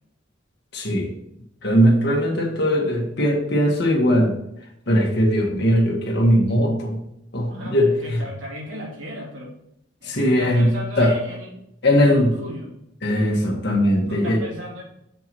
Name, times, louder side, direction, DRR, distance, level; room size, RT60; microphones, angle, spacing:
voice 1, 0.7-1.1 1.6-4.4 4.9-7.0 7.3-8.2 10.0-11.1 11.8-12.3 13.0-14.4, equal, 60° left, 0 dB, 1.8 m, -19 dB
voice 2, 7.5-9.5 10.0-11.6 12.0-12.7 13.4-13.5 14.1-14.8, equal, 80° right, -4 dB, 3.2 m, -35 dB
7.0 x 4.7 x 6.2 m, 0.79 s
head